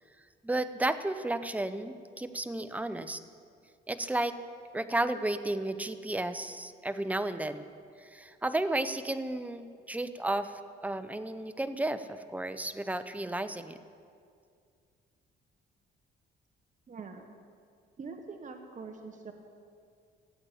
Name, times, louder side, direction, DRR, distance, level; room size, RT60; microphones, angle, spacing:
voice 1, 0.4-3.2 3.9-4.4 4.7-7.6 8.0-13.8, right 2 dB, 5° right, 11 dB, 0.8 m, -33 dB
voice 2, 16.9-17.3 18.0-19.3, right 4 dB, 40° right, 4 dB, 1.4 m, -44 dB
16.0 x 8.7 x 8.4 m, 2.2 s
cardioid pair, 90°, 20 cm